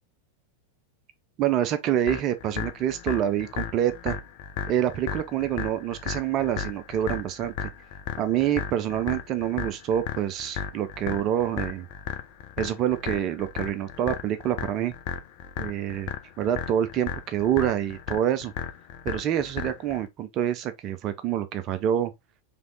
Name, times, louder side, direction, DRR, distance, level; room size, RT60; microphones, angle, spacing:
voice 1, 1.4-4.2 4.7-7.5 8.2-11.9 12.6-14.9 15.6-16.1 16.4-18.5 19.0-22.1, right 10 dB, 35° right, 0.4 m, -26 dB
sound 1, 2.1-20.1, left 8 dB, 45° left, 0.7 m, -35 dB
3.4 x 3.0 x 3.8 m
figure-of-eight pair, 90°, 0 cm